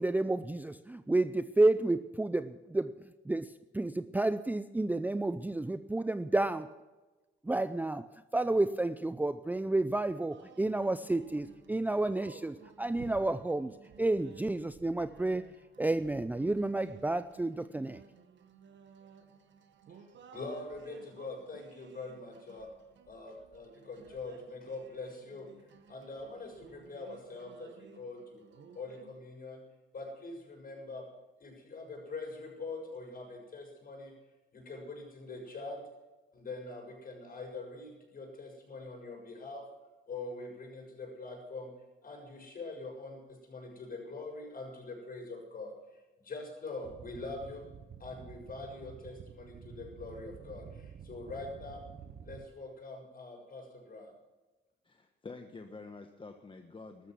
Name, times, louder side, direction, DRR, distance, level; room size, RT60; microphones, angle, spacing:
voice 1, 0.0-6.7 7.4-8.1 8.3-15.4 15.8-18.0, right 2 dB, 10° right, 13 dB, 0.5 m, -31 dB
sound 1, 10.3-29.2, right 6 dB, 70° right, 1.7 m, -56 dB
voice 2, 20.3-22.7 23.1-25.5 25.9-28.4 28.7-29.6 29.9-31.1 31.4-34.1 34.5-35.8 36.3-39.7 40.1-41.7 42.0-45.7 46.2-47.7 48.0-51.8 52.2-54.1, left 3 dB, 45° left, 1 dB, 6.7 m, -43 dB
sound 2, 46.8-52.5, right 7 dB, 50° right, 1.0 m, -50 dB
voice 3, 54.8-57.1, left 3 dB, 25° left, 5 dB, 1.2 m, -48 dB
14.0 x 13.0 x 6.1 m, 1.2 s
cardioid pair, 90°, 20 cm